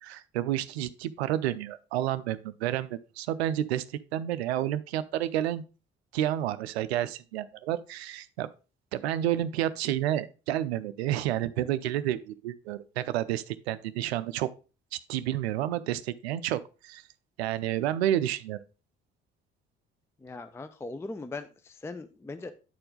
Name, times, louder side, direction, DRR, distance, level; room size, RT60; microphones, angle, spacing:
voice 1, 0.0-5.6 6.1-8.5 8.9-14.5 14.9-17.0 17.4-18.6, right 12 dB, 70° right, 0.5 m, -30 dB
voice 2, 20.2-22.5, left 3 dB, 10° left, 0.5 m, -39 dB
8.9 x 4.5 x 3.7 m
figure-of-eight pair, 50°, 33 cm